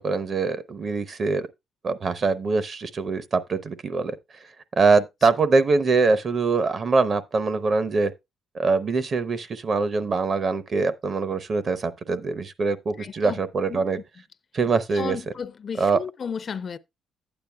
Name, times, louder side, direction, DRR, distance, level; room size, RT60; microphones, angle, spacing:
voice 1, 0.0-1.5 1.8-4.2 4.8-8.1 8.5-14.0 14.5-15.2 15.8-16.0, right 4 dB, 45° right, 0.7 m, -23 dB
voice 2, 13.0-13.4 13.7-13.8 14.6-16.8, left 6 dB, 45° left, 0.4 m, -34 dB
11.5 x 8.8 x 2.2 m
cardioid pair, 90°, 0 cm